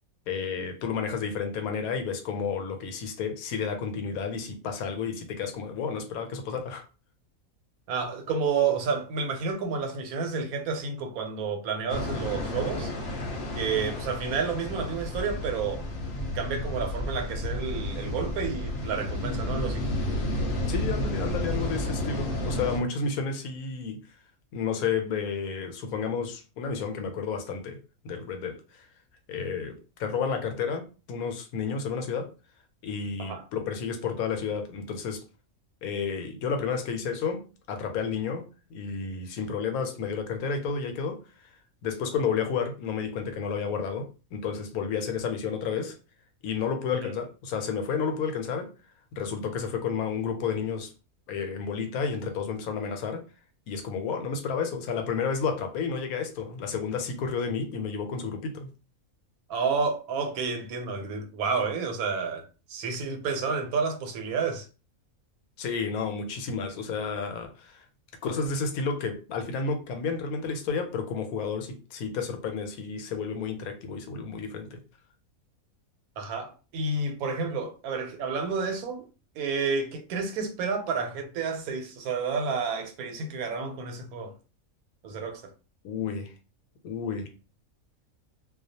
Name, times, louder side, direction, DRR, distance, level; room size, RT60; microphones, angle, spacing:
voice 1, 0.3-6.8 20.7-24.0 24.5-27.8 28.0-28.9 29.3-32.3 32.8-35.2 35.8-38.4 38.7-41.2 41.8-46.0 46.4-48.7 49.1-50.9 51.3-53.2 53.7-58.7 65.6-67.8 68.2-74.8 85.8-86.3 86.8-87.3, left 5 dB, 90° left, 1.1 m, -31 dB
voice 2, 7.9-12.9 13.5-15.8 16.3-19.9 33.2-33.4 46.9-47.1 59.5-64.7 76.2-79.0 79.3-84.3 85.0-85.5, right 5 dB, 85° right, 1.1 m, -30 dB
sound 1, 11.9-22.8, left 1 dB, 55° left, 0.8 m, -31 dB
2.4 x 2.1 x 2.7 m
omnidirectional pair, 1.5 m